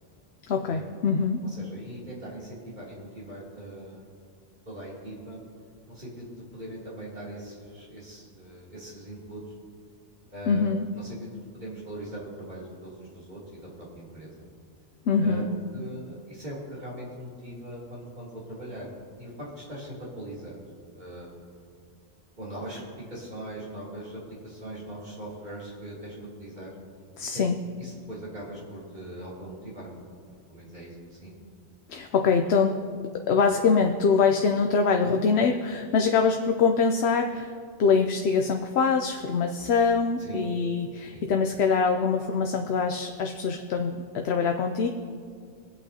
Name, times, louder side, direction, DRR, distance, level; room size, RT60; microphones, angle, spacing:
voice 1, 0.5-1.5 10.5-10.9 15.1-15.5 27.2-27.6 31.9-32.9 33.1-37.5 37.8-44.9, left 5 dB, 80° left, 4 dB, 0.9 m, -24 dB
voice 2, 1.4-4.1 4.7-5.4 5.9-9.4 10.3-13.7 13.9-14.3 15.2-15.5 15.7-18.9 19.2-20.6 20.9-21.4 22.4-26.7 27.2-27.4 27.8-30.0 30.3-31.4 40.2-40.4 41.1-41.3, right 1 dB, 45° right, -6 dB, 3.2 m, -41 dB
24.5 x 8.3 x 2.8 m, 2.1 s
omnidirectional pair, 1.1 m